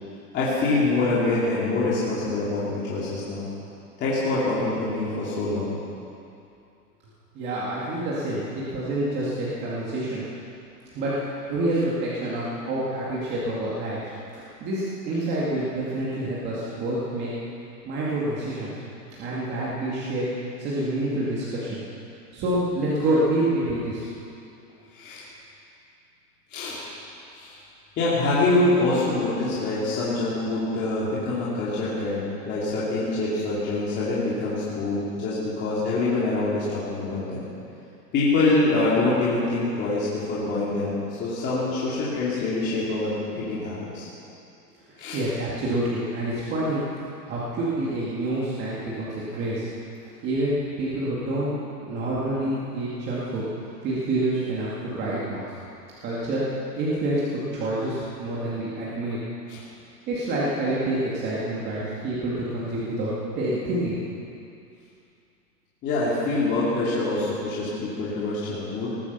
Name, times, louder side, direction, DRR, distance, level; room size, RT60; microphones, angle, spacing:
voice 1, 0.3-3.5 4.0-5.8 24.9-25.2 26.5-26.8 27.3-27.6 28.0-37.4 38.1-44.1 45.0-45.2 59.5-59.6 65.8-68.9, left 2 dB, 20° left, -9 dB, 2.7 m, -25 dB
voice 2, 7.3-10.2 10.9-14.0 14.3-17.3 17.9-18.7 19.2-20.3 20.6-21.8 22.3-24.1 45.1-46.8 47.3-49.7 50.2-50.5 50.8-51.5 51.9-53.5 53.8-55.5 56.0-56.4 56.8-59.2 60.1-64.0, right 1 dB, 20° right, -7 dB, 2.2 m, -27 dB
19.0 x 9.9 x 6.9 m, 2.6 s
supercardioid pair, 165°, 48 cm